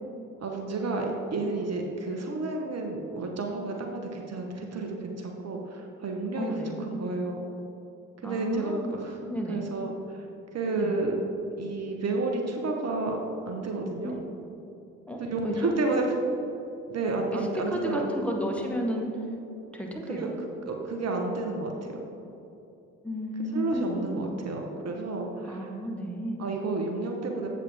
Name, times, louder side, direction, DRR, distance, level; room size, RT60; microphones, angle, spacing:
voice 1, 0.4-6.5 6.8-7.4 8.2-9.1 9.5-10.3 10.5-11.2 11.6-13.2 13.5-14.2 15.3-16.0 16.9-18.1 20.1-20.3 20.7-22.0 23.5-25.7 26.4-27.5, right 3 dB, 40° right, 2 dB, 1.0 m, -31 dB
voice 2, 6.4-6.7 8.2-9.0 9.3-9.7 10.7-10.9 14.0-14.2 15.1-15.7 17.3-19.1 19.7-20.3 23.0-24.3 25.4-26.4, equal, 5° left, 0 dB, 1.2 m, -32 dB
8.1 x 7.7 x 3.4 m, 2.9 s
figure-of-eight pair, 45°, 41 cm